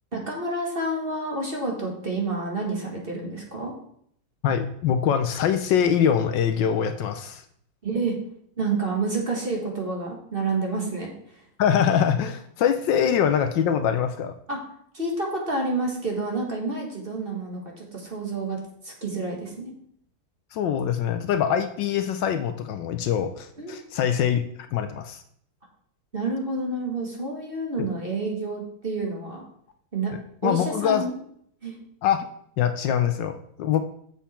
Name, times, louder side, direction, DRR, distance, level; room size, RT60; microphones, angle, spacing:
voice 1, 0.1-3.7 7.8-8.1 8.6-11.4 14.5-14.6 14.9-19.7 23.6-23.8 26.1-29.4 29.9-30.1 30.4-31.1 31.6-31.8, right 3 dB, 30° right, 0 dB, 1.7 m, -29 dB
voice 2, 4.4-7.4 11.6-14.3 20.5-24.4 24.7-25.2 27.8-27.9 30.4-31.0 32.0-32.3 32.6-33.8, left 8 dB, 75° left, 9 dB, 1.3 m, -23 dB
7.1 x 7.1 x 4.3 m, 0.67 s
omnidirectional pair, 2.1 m